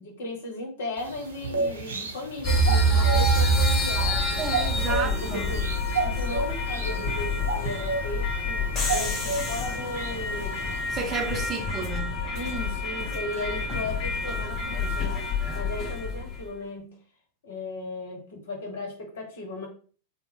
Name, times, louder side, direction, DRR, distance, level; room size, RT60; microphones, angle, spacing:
voice 1, 0.0-5.7 5.9-10.6 12.3-17.0 17.4-19.7, left 1 dB, 60° left, 1.1 m, -36 dB
sound 1, 1.0-10.8, right 3 dB, 70° right, 0.6 m, -33 dB
sound 2, 2.4-16.4, equal, 25° left, 1.3 m, -27 dB
voice 2, 4.4-5.4 10.9-12.2, right 5 dB, 25° right, 0.6 m, -31 dB
3.1 x 2.1 x 3.1 m
figure-of-eight pair, 90°, 0 cm